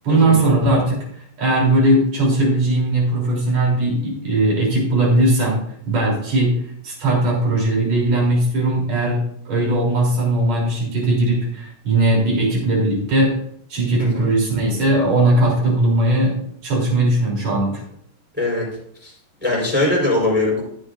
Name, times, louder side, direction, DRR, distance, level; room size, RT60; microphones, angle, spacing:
voice 1, 0.0-1.0 1.4-5.6 5.9-6.5 6.8-13.3 13.7-16.3 16.6-17.7, right 2 dB, 50° right, -3 dB, 4.5 m, -18 dB
voice 2, 18.3-18.6 19.0-19.1 19.4-20.6, left 2 dB, 5° right, -4 dB, 3.9 m, -21 dB
14.0 x 8.4 x 2.6 m, 0.68 s
omnidirectional pair, 4.0 m